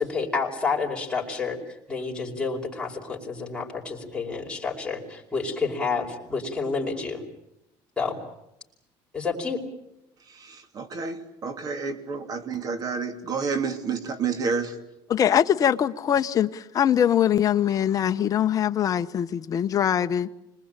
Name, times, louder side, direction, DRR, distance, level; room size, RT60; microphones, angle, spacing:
voice 1, 0.0-7.2 8.0-8.2 9.1-9.6, left 4 dB, 10° left, 5.1 m, -29 dB
voice 2, 10.7-14.7, right 5 dB, 40° right, 2.9 m, -29 dB
voice 3, 15.1-20.3, left 9 dB, 35° left, 0.9 m, -22 dB
26.0 x 20.5 x 9.0 m
cardioid pair, 130°, 10 cm